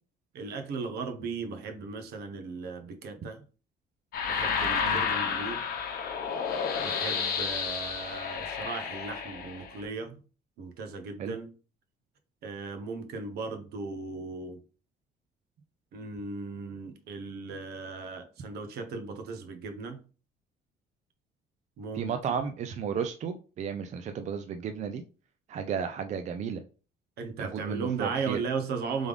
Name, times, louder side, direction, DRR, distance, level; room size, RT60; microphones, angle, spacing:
voice 1, 0.3-3.4 4.2-5.6 6.8-10.2 10.6-11.5 12.4-14.6 15.9-20.1 21.8-22.1 27.2-29.1, right 4 dB, 70° right, 0.9 m, -36 dB
sound 1, 4.1-9.8, left 6 dB, 60° left, 0.8 m, -31 dB
voice 2, 21.9-25.0 25.5-26.6 27.4-28.4, right 7 dB, 45° right, 0.4 m, -33 dB
3.5 x 3.4 x 3.5 m
cardioid pair, 110°, 17 cm